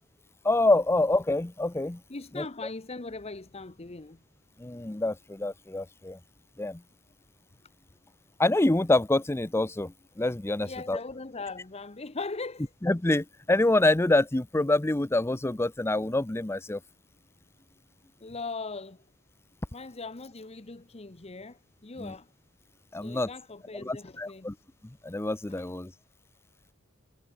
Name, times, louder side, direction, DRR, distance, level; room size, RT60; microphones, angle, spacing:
voice 1, 0.4-2.0 2.4-2.5 4.6-6.2 6.6-6.8 8.4-11.0 12.8-16.8 22.0-22.1 22.9-23.3 23.7-24.5 25.0-25.9, left 2 dB, 10° left, 0.5 m, -26 dB
voice 2, 2.1-4.2 10.6-12.7 18.2-19.0 19.7-22.3 23.0-24.5 25.5-25.6, left 3 dB, 30° left, 1.0 m, -40 dB
head